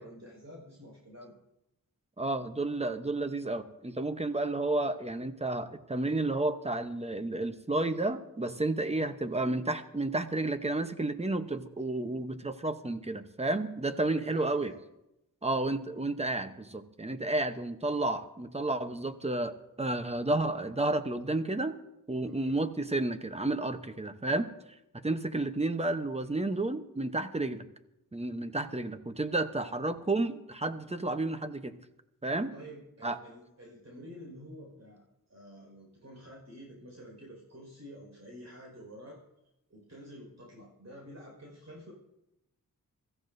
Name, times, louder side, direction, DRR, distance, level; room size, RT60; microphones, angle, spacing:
voice 1, 0.0-1.3 14.0-14.8 22.2-22.6 32.5-35.0 35.3-39.2 39.7-41.9, equal, 50° right, -2 dB, 5.3 m, -49 dB
voice 2, 2.2-14.7 15.4-21.8 22.1-24.5 24.9-27.6 28.1-31.8 32.2-32.5 33.0-33.2, right 2 dB, 20° right, 9 dB, 0.9 m, -31 dB
24.0 x 14.5 x 2.7 m, 0.88 s
wide cardioid pair, 95°, 35 cm